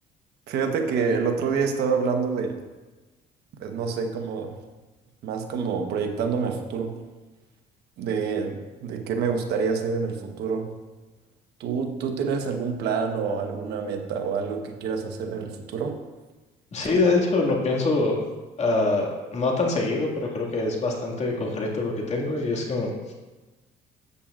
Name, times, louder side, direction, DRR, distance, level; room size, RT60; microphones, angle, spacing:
voice 1, 0.5-2.6 3.6-4.6 5.2-6.9 8.0-10.7 11.6-16.0 16.8-16.9, right 5 dB, 75° right, 4 dB, 1.2 m, -27 dB
voice 2, 16.7-18.2 18.6-23.1, left 3 dB, 40° left, -1 dB, 2.0 m, -24 dB
12.0 x 8.8 x 2.5 m, 1.2 s
cardioid pair, 110°, 17 cm